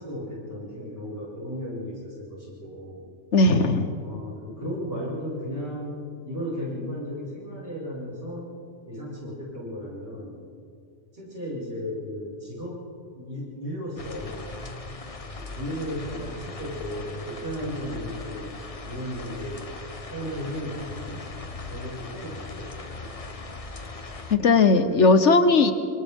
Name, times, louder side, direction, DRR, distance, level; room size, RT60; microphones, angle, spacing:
voice 1, 0.0-3.1 4.0-6.0 6.2-8.5 8.9-10.4 11.1-12.8 13.1-14.5 15.3-19.6 20.1-21.3 21.7-23.1, equal, 60° right, -7 dB, 6.4 m, -35 dB
voice 2, 3.3-4.0 24.3-25.7, left 3 dB, 70° left, 9 dB, 1.4 m, -18 dB
sound 1, 14.0-24.4, left 3 dB, 30° left, 1.0 m, -39 dB
29.0 x 25.5 x 3.7 m, 2.4 s
omnidirectional pair, 1.3 m